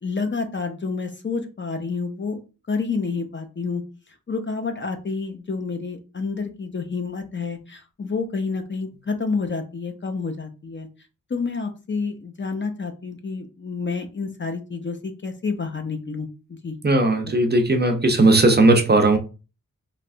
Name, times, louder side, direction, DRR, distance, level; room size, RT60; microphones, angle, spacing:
voice 1, 0.0-2.4 2.7-3.8 4.3-10.9 11.3-16.7, left 4 dB, 35° left, 0.5 m, -29 dB
voice 2, 16.8-19.2, right 2 dB, 30° right, 0.5 m, -17 dB
3.2 x 2.8 x 2.5 m
wide cardioid pair, 130°, 34 cm